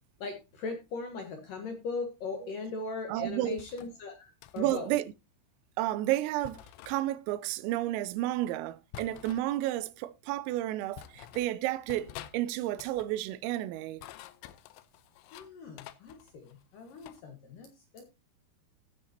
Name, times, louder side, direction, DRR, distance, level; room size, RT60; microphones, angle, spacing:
voice 1, 0.2-5.0 15.3-17.7 17.9-18.1, left 4 dB, 65° left, 2.3 m, -39 dB
voice 2, 3.1-3.6 4.6-5.0 5.8-14.0, right 15 dB, 90° right, 3.4 m, -31 dB
sound 1, 3.6-3.9 4.4-4.8 6.4-7.0 8.9-9.5 10.3-10.4 11.0-11.5 11.9-12.4 12.7-13.1 13.8-15.5 15.8-17.2, left 12 dB, 80° left, 2.7 m, -48 dB
15.5 x 8.9 x 2.8 m
omnidirectional pair, 5.8 m